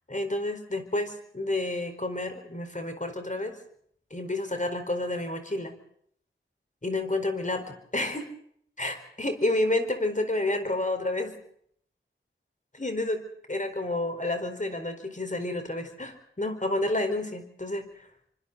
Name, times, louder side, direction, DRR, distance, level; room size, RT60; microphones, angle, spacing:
voice 1, 0.1-3.6 4.1-5.7 6.8-8.3 8.8-11.4 12.7-18.0, left 2 dB, 35° left, 7 dB, 4.4 m, -30 dB
29.0 x 25.0 x 4.0 m, 0.65 s
wide cardioid pair, 60°, 21 cm